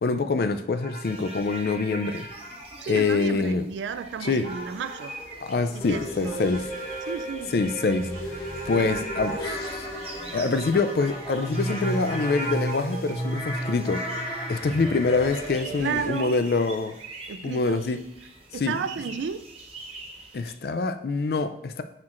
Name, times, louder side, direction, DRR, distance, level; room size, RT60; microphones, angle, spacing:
voice 1, 0.0-2.3 2.9-3.6 4.2-4.5 5.5-6.6 7.5-8.1 8.7-9.9 10.3-14.1 14.5-16.9 17.4-18.0 18.6-18.8 20.3-21.8, left 4 dB, 60° left, 0.4 m, -25 dB
sound 1, 0.7-2.8 4.4-15.5, right 1 dB, 35° left, 2.4 m, -37 dB
sound 2, 0.9-20.5, right 3 dB, 35° right, 0.8 m, -46 dB
voice 2, 2.8-5.2 5.6-6.7 7.1-7.6 8.8-8.9 15.8-16.4 17.3-17.8 18.5-19.4, right 6 dB, 85° right, 0.3 m, -33 dB
sound 3, 5.8-16.1, right 1 dB, 5° right, 2.5 m, -35 dB
9.5 x 4.4 x 2.5 m
head